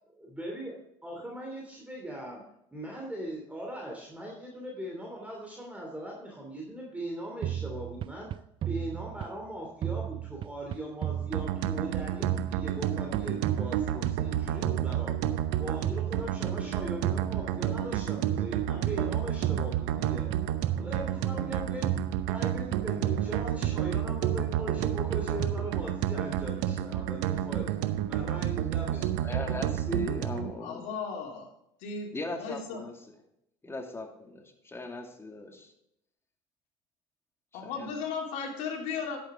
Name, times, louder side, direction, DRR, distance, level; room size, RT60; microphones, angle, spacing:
voice 1, 0.2-0.7 1.0-2.4 2.7-8.3 8.6-15.2 15.6-20.3 20.7-21.9 22.2-29.3, right 1 dB, 10° right, -1 dB, 2.9 m, -40 dB
sound 1, 7.4-9.5 9.8-12.0 12.2-14.4 14.6-16.7 17.0-19.0 19.4-21.5 21.8-23.9 24.2-26.4, right 11 dB, 40° right, 0.3 m, -35 dB
sound 2, 11.3-30.5, right 11 dB, 75° right, 0.8 m, -30 dB
voice 2, 29.0-30.9 32.1-33.1 33.6-35.7 37.6-37.9, left 2 dB, 20° left, 3 dB, 2.3 m, -39 dB
voice 3, 30.6-31.5 31.8-32.1 32.4-32.8 37.5-39.2, left 5 dB, 65° left, 1 dB, 3.1 m, -35 dB
10.5 x 8.8 x 3.7 m, 0.79 s
hypercardioid pair, 75°, 14 cm